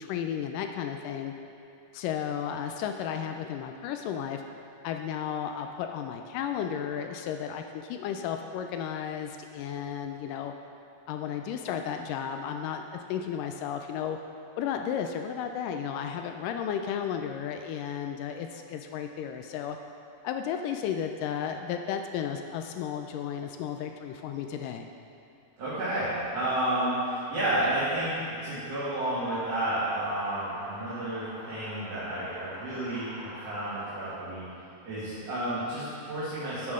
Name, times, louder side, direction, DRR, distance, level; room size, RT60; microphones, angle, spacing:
voice 1, 0.0-1.3 1.9-4.4 4.8-10.5 11.1-14.2 14.6-19.8 20.2-24.9, left 8 dB, 80° left, 5 dB, 2.0 m, -33 dB
voice 2, 25.6-28.1 28.4-34.4 34.9-36.7, right 1 dB, 50° right, -13 dB, 3.0 m, -31 dB
sound 1, 29.2-34.1, right 1 dB, 70° right, 1.1 m, -46 dB
12.0 x 7.6 x 3.7 m, 2.7 s
omnidirectional pair, 4.0 m